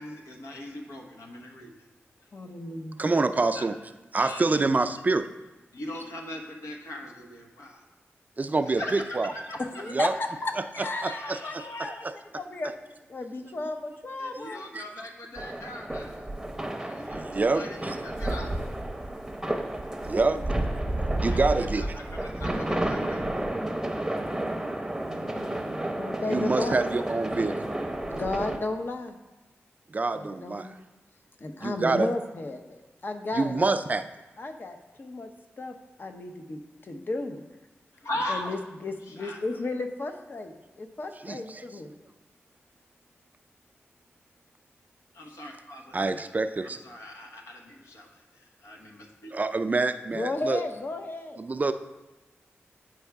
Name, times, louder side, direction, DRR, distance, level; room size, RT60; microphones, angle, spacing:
voice 1, 0.0-1.7 3.5-3.6 4.2-4.6 5.7-7.8 8.8-8.9 9.3-9.6 11.1-11.9 14.2-16.3 16.8-17.8 18.0-18.6 21.3-21.5 21.9-23.3 38.0-38.5 39.2-39.4 45.1-46.0 46.8-48.1 48.6-49.5, left 1 dB, 80° left, 0 dB, 1.1 m, -39 dB
voice 2, 2.3-3.1 5.9-6.0 9.6-10.1 10.4-12.8 13.1-14.7 24.9-26.8 28.0-29.2 30.1-30.8 31.4-33.7 34.4-35.3 35.6-37.4 38.3-41.9 50.1-51.4, left 2 dB, 50° left, 5 dB, 0.7 m, -34 dB
voice 3, 3.0-3.8 4.1-5.3 8.4-9.3 9.9-10.1 11.0-12.2 14.3-14.4 14.7-14.9 17.1-18.0 20.0-20.7 21.2-21.9 26.3-27.6 29.9-30.8 31.6-32.1 33.3-34.1 41.2-41.6 45.9-46.8 49.3-50.6 51.4-51.7, right 3 dB, 35° right, 10 dB, 0.4 m, -26 dB
sound 1, 15.4-28.6, right 1 dB, 10° right, 0.8 m, -31 dB
9.1 x 4.7 x 3.5 m, 1.1 s
cardioid pair, 70°, 5 cm